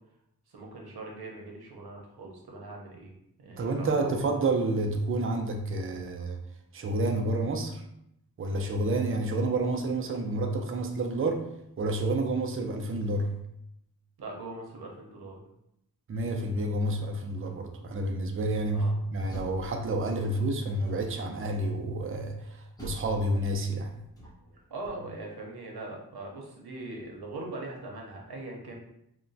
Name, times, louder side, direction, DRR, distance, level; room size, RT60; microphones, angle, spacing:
voice 1, 0.5-3.1 3.4-4.1 14.2-15.4 18.7-18.9 24.7-28.7, right 2 dB, 85° right, -1 dB, 0.7 m, -41 dB
voice 2, 3.6-6.4 6.7-7.8 8.4-11.4 11.8-13.3 16.1-22.4 22.8-24.0, right 2 dB, 35° right, 3 dB, 0.4 m, -29 dB
Door, 19.0-20.3 20.8-21.4 22.8-24.7, equal, 10° left, 0.8 m, -46 dB
3.0 x 2.1 x 2.6 m, 0.78 s
wide cardioid pair, 90°, 37 cm